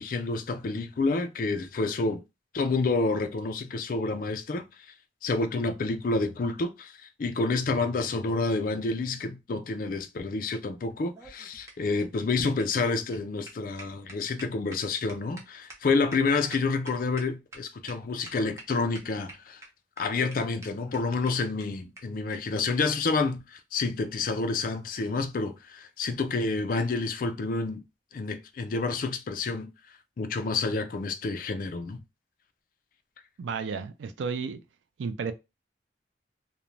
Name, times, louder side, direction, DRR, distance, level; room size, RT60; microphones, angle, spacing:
voice 1, 0.0-2.2 2.5-4.6 5.2-19.6 20.0-27.8 28.1-29.7 30.2-32.0, left 3 dB, 45° left, 0.4 m, -29 dB
sound 1, 10.9-17.6 17.9-18.0 18.2-18.7 18.9-19.7 20.0-20.1 20.3-20.4 20.6-20.7 20.9-21.0 21.3-21.4 21.6-21.7 22.0-22.1 22.3-22.4 23.2-23.4, right 1 dB, 15° right, 0.6 m, -46 dB
voice 2, 33.4-34.6 35.0-35.3, right 5 dB, 80° right, 0.4 m, -32 dB
2.5 x 2.1 x 3.0 m
head